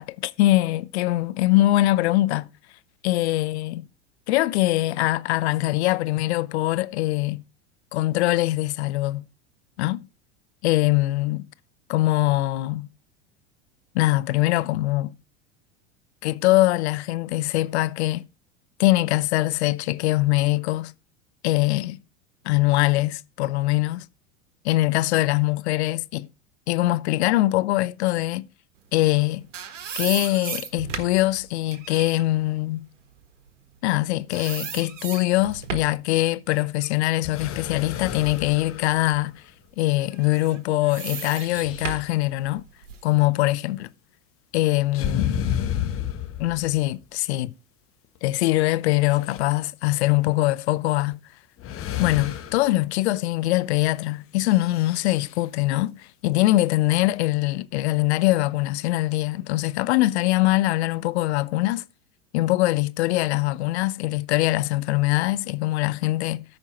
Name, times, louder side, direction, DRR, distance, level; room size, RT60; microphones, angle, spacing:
voice 1, 0.0-2.5 3.0-3.8 4.3-7.4 7.9-9.2 9.8-10.1 10.6-11.5 11.9-12.9 13.9-15.1 16.2-18.2 18.8-20.9 21.4-22.0 22.4-24.1 24.6-26.3 26.7-28.5 28.9-29.5 30.0-32.9 33.8-39.4 39.8-42.6 43.0-43.9 44.5-45.4 46.4-47.5 48.2-51.2 52.0-61.8 62.3-66.4, left 18 dB, 60° left, 0.6 m, -22 dB
sound 1, 29.1-34.0 34.3-36.0 36.5-38.5 38.9-39.1 40.1-43.1, right 8 dB, 70° right, 1.5 m, -36 dB
sound 2, 37.2-39.5 40.9-42.1 44.9-46.9 48.2-48.3 48.8-49.4 51.0-51.1 51.6-52.8 54.5-55.4, left 9 dB, 35° left, 1.5 m, -32 dB
13.0 x 5.3 x 4.2 m
hypercardioid pair, 90°, 37 cm